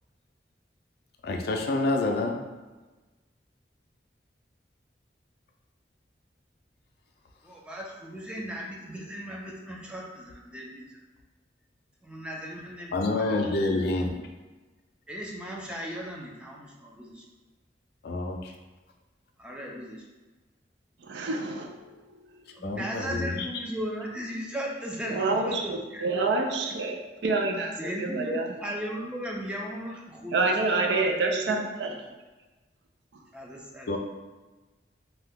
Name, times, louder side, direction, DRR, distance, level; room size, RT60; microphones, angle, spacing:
voice 1, 1.2-2.4 12.9-14.3 18.0-18.5 22.6-23.5 33.9-34.0, left 2 dB, 60° left, 2 dB, 0.4 m, -28 dB
voice 2, 7.4-10.9 12.0-14.0 15.1-17.2 19.4-20.0 22.6-26.3 27.8-31.6 31.9-32.0 33.3-33.9, equal, 5° right, -2 dB, 0.4 m, -37 dB
voice 3, 21.0-22.1 23.1-23.2 25.1-27.0 27.2-28.5 30.3-32.0, right 3 dB, 70° right, 2 dB, 0.4 m, -28 dB
2.8 x 2.2 x 3.5 m, 1.2 s
head